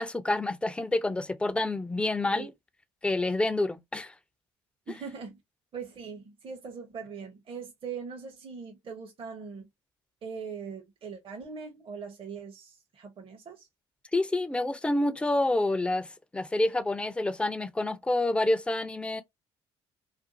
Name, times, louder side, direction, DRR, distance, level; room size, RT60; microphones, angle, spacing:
voice 1, 0.0-2.5 3.0-4.1 14.1-19.2, left 2 dB, 10° left, 0.4 m, -28 dB
voice 2, 4.9-5.4 5.7-9.7 10.2-13.7, right 5 dB, 45° right, 0.8 m, -41 dB
2.5 x 2.4 x 2.6 m
hypercardioid pair, 55°, 13 cm